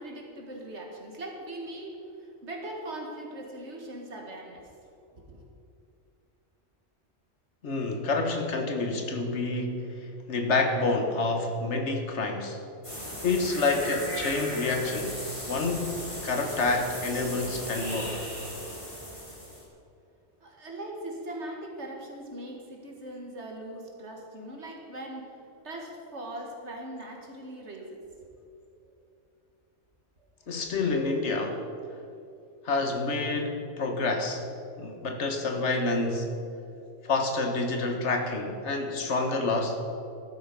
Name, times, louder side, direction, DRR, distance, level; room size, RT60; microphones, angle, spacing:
voice 1, 0.0-4.7 5.1-5.4 20.4-25.4 25.6-28.0, right 1 dB, 65° right, 0 dB, 2.3 m, -40 dB
voice 2, 7.6-12.6 13.2-15.2 15.5-18.2 30.5-31.6 32.6-34.4 34.8-36.3 37.0-39.8, left 3 dB, 70° left, 4 dB, 1.6 m, -28 dB
sound 1, 12.8-19.6, equal, 25° left, 3.6 m, -37 dB
14.0 x 12.0 x 5.3 m, 2.6 s
omnidirectional pair, 1.3 m